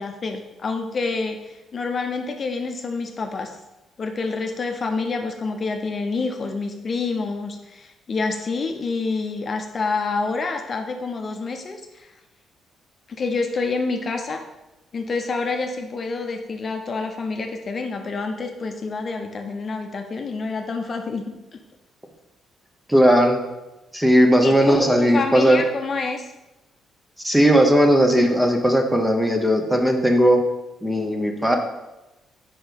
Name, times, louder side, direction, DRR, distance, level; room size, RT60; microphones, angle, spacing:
voice 1, 0.0-3.6 4.0-12.1 13.1-14.4 14.9-21.2 24.4-26.3, left 4 dB, 45° left, 4 dB, 0.7 m, -27 dB
voice 2, 22.9-23.4 23.9-25.6 27.2-30.4 30.8-31.6, equal, 5° right, 4 dB, 0.8 m, -17 dB
4.5 x 4.4 x 5.1 m, 0.99 s
cardioid pair, 90°, 0 cm